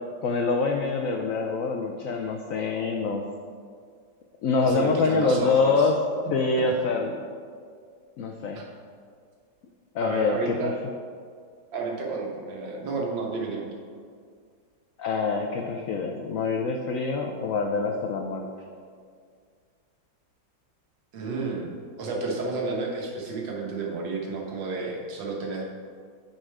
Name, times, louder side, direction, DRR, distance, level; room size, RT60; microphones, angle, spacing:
voice 1, 0.2-3.2 4.4-6.0 6.3-7.1 8.2-8.6 9.9-10.7 15.0-18.5, left 4 dB, 85° left, 3 dB, 0.7 m, -25 dB
voice 2, 4.6-5.9 6.6-6.7 8.5-8.7 10.0-10.7 11.7-13.6 21.1-25.6, right 3 dB, 80° right, -1 dB, 1.9 m, -31 dB
8.9 x 4.4 x 4.8 m, 2.1 s
omnidirectional pair, 2.0 m